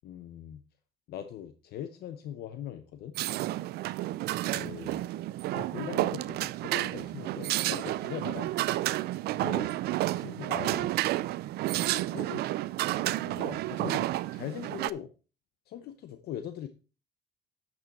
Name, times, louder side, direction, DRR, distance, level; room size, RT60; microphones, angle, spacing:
voice 1, 0.0-0.6 1.1-3.1 4.5-5.0 5.5-8.5 9.3-9.7 10.0-10.9 11.7-12.4 12.7-12.8 13.2-15.1 15.7-16.7, left 10 dB, 70° left, 9 dB, 0.7 m, -41 dB
sound 1, 3.1-14.9, right 16 dB, 70° right, 0.4 m, -31 dB
9.0 x 6.3 x 4.1 m, 0.34 s
cardioid pair, 110°, 17 cm